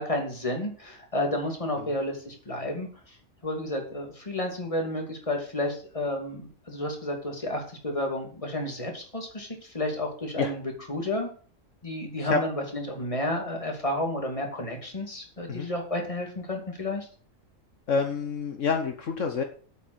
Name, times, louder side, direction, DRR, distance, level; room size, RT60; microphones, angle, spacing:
voice 1, 0.0-2.9 3.4-11.3 11.8-17.1, left 1 dB, 25° left, 2 dB, 2.8 m, -31 dB
voice 2, 17.9-19.4, left 5 dB, 65° left, 5 dB, 1.5 m, -27 dB
8.4 x 7.3 x 8.1 m, 0.42 s
omnidirectional pair, 1.4 m